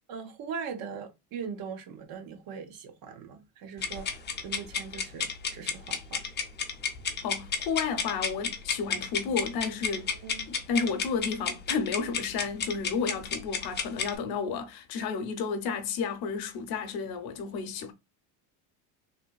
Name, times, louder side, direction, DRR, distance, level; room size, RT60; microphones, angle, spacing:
voice 1, 0.1-4.2 4.4-6.3 10.1-10.5, right 6 dB, 55° right, 0.8 m, -40 dB
sound 1, 3.8-14.2, left 6 dB, 25° left, 0.5 m, -32 dB
voice 2, 7.2-10.1 10.5-17.9, left 5 dB, 55° left, 0.8 m, -32 dB
3.4 x 2.6 x 2.3 m
cardioid pair, 135°, 43 cm